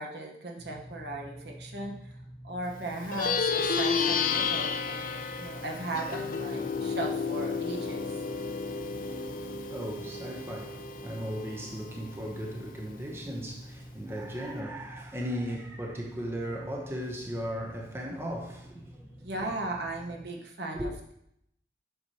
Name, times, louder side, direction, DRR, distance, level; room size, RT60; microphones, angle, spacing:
voice 1, 0.0-2.1 2.4-8.1 19.2-21.1, right 2 dB, 75° right, 1.1 m, -37 dB
sound 1, 0.6-20.3, equal, 20° left, 1.2 m, -48 dB
Plucked string instrument, 3.0-12.7, left 5 dB, 50° left, 0.5 m, -32 dB
voice 2, 9.4-19.3 20.7-20.9, equal, 15° right, 0.8 m, -37 dB
7.7 x 5.8 x 2.9 m
head